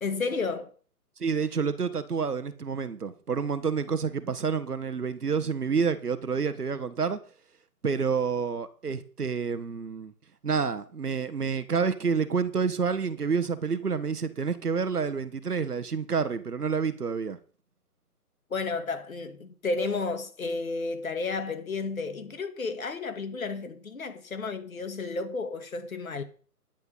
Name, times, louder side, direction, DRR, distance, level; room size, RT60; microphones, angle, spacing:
voice 1, 0.0-0.7 18.5-26.2, left 4 dB, 60° left, 2.2 m, -32 dB
voice 2, 1.2-7.2 7.8-10.1 10.4-17.4, right 5 dB, 70° right, 1.6 m, -28 dB
10.5 x 8.5 x 5.6 m
figure-of-eight pair, 155°, 47 cm